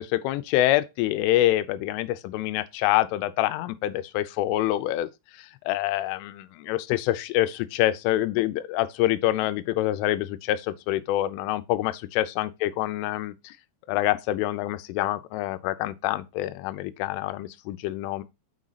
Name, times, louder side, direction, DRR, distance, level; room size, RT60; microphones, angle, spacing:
voice 1, 0.0-5.1 5.4-13.6 13.9-18.2, left 14 dB, 80° left, 3.1 m, -26 dB
6.3 x 6.2 x 4.0 m
omnidirectional pair, 5.8 m